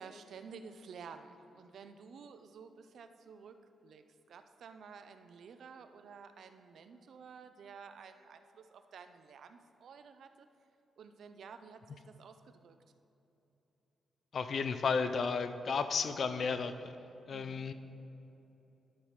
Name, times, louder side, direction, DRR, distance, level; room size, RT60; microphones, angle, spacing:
voice 1, 0.0-10.5 11.0-12.8 17.3-17.6, right 5 dB, 60° right, 9 dB, 0.4 m, -52 dB
voice 2, 14.3-17.0 17.3-17.7, left 5 dB, 45° left, 10 dB, 0.4 m, -33 dB
12.0 x 5.8 x 3.1 m, 3.0 s
wide cardioid pair, 160°, 0 cm